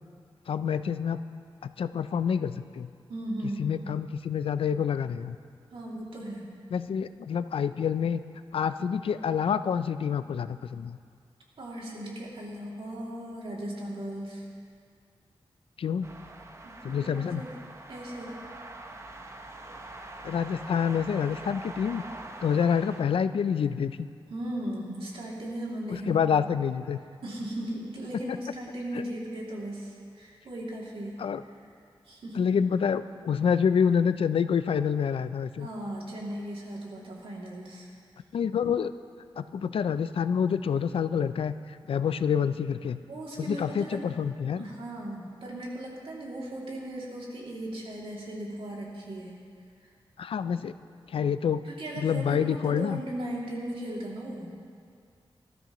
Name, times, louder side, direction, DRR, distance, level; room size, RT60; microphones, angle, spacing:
voice 1, 0.5-1.2 1.6-2.9 3.6-5.4 6.7-8.2 8.5-11.0 15.8-16.1 16.8-17.4 20.2-22.0 22.4-24.1 25.9-27.0 28.9-29.0 31.2-31.4 32.3-35.7 38.3-38.9 39.4-41.5 41.9-43.0 43.4-44.7 50.2-50.7 51.1-51.6 52.0-53.0, left 7 dB, 80° left, 12 dB, 0.4 m, -27 dB
voice 2, 3.1-3.8 5.7-6.5 11.6-14.5 16.6-17.5 17.9-18.3 24.3-26.1 27.2-31.2 32.1-32.5 35.6-37.9 43.1-44.0 44.6-49.4 51.7-54.5, right 1 dB, 80° right, -4 dB, 2.6 m, -37 dB
sound 1, 16.0-23.0, right 2 dB, 30° right, 0.7 m, -44 dB
19.5 x 13.0 x 3.0 m, 2.3 s
wide cardioid pair, 175°, 9 cm